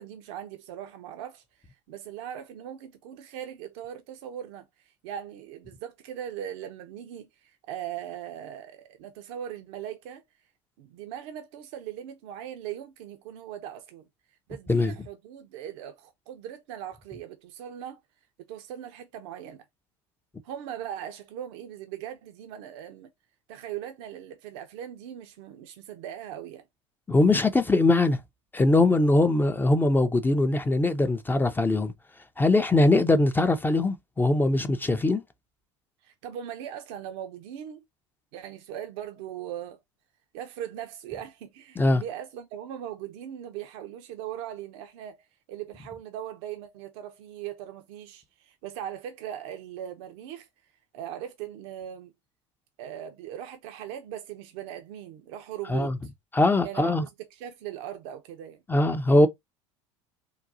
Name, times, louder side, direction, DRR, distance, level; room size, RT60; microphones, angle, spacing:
voice 1, 0.0-10.2 10.8-14.0 14.5-18.0 18.5-19.7 20.4-23.1 23.5-26.6 36.0-37.8 38.3-39.8 40.3-50.5 50.9-52.1 52.8-55.9 56.6-58.6, right 10 dB, 60° right, 0.6 m, -39 dB
voice 2, 27.1-28.2 28.5-31.9 32.4-35.2 41.8-42.0 55.7-56.0 56.3-57.0 58.7-59.3, left 2 dB, 10° left, 0.5 m, -21 dB
3.8 x 2.3 x 2.6 m
hypercardioid pair, 75°, 16 cm